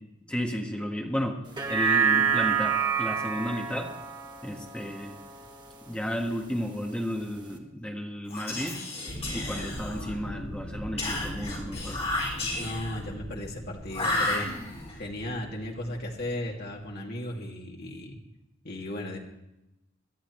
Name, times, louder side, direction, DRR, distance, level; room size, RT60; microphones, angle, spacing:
voice 1, 0.3-1.4 1.7-3.9 4.4-5.2 5.9-8.8 9.3-12.1, equal, 5° left, 1 dB, 1.6 m, -33 dB
sound 1, 1.5-6.0 6.4-6.5, right 7 dB, 20° right, 1.5 m, -28 dB
Whispering, 8.2-10.2 11.0-13.0 13.9-14.9, left 2 dB, 35° left, 5.7 m, -32 dB
sound 2, 9.1-16.9, equal, 70° right, 6.2 m, -41 dB
voice 2, 12.6-14.6 15.0-18.2 18.6-19.2, left 1 dB, 55° left, -1 dB, 2.6 m, -36 dB
22.0 x 13.0 x 3.2 m, 0.90 s
head